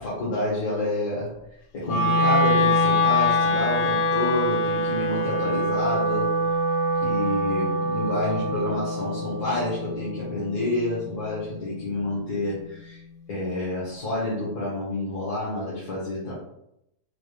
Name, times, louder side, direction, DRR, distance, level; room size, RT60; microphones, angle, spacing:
voice 1, 0.0-1.3 1.7-6.3 7.0-13.0 13.3-16.3, left 1 dB, 85° left, -8 dB, 1.7 m, -28 dB
Wind instrument woodwind instrument, 1.8-12.0, left 1 dB, 70° left, 1.0 m, -24 dB
4.5 x 2.4 x 3.1 m, 0.80 s
omnidirectional pair, 1.7 m